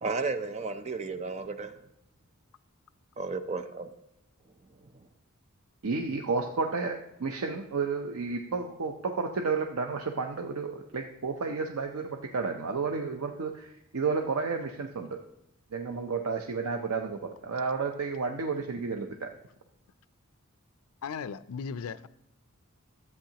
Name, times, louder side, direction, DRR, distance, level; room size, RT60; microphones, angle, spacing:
voice 1, 0.0-1.7 3.2-3.9, right 4 dB, 30° right, 0.5 m, -33 dB
voice 2, 5.8-15.2 15.7-19.3, right 4 dB, 85° right, 0.6 m, -32 dB
voice 3, 21.0-22.1, left 6 dB, 80° left, 0.4 m, -36 dB
13.0 x 8.1 x 2.9 m
head